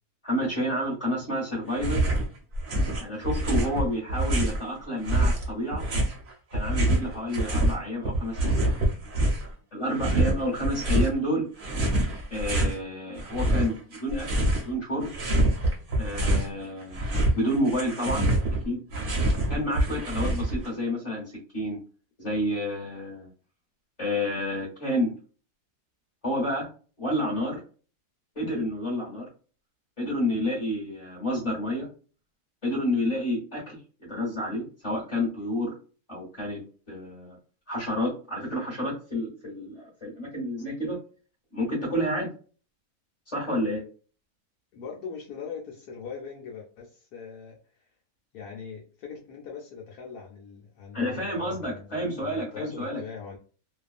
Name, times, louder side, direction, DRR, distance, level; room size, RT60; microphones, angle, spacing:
voice 1, 0.2-2.0 3.0-5.8 6.5-8.7 9.7-11.5 12.3-14.3 14.6-15.1 16.0-17.0 17.3-18.3 18.6-18.8 19.5-21.8 22.2-23.3 24.0-25.1 26.2-26.6 27.0-27.6 28.3-29.3 30.0-31.9 32.6-33.8 34.1-35.7 36.1-36.6 36.9-37.4 37.7-41.0 41.5-42.3 43.3-43.8 50.9-53.0, equal, 30° left, -5 dB, 1.1 m, -29 dB
sound 1, 1.7-2.3 2.5-4.6 5.0-7.7 8.0-9.5 9.9-11.1 11.6-12.8 13.2-14.7 15.0-16.5 16.8-20.7, right 1 dB, 45° right, 0.8 m, -25 dB
voice 2, 44.7-47.9 48.3-53.4, left 6 dB, 80° left, -1 dB, 1.2 m, -41 dB
2.7 x 2.3 x 2.4 m, 0.39 s
omnidirectional pair, 1.7 m